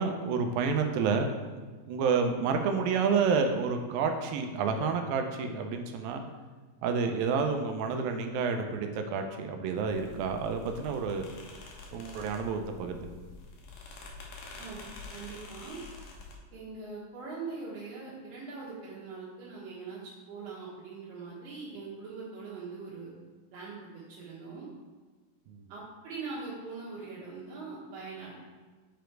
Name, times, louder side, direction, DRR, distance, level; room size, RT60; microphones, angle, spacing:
voice 1, 0.0-1.6 1.9-6.3 6.8-11.3 11.9-13.1 25.5-25.6, right 5 dB, 90° right, 5 dB, 2.5 m, -29 dB
sound 1, 9.9-16.4, left 3 dB, 65° left, 2.3 m, -47 dB
voice 2, 14.6-15.8 16.5-23.1 23.5-24.7 25.7-28.3, right 4 dB, 75° right, -8 dB, 3.1 m, -42 dB
9.0 x 5.1 x 4.5 m, 1.4 s
omnidirectional pair, 4.2 m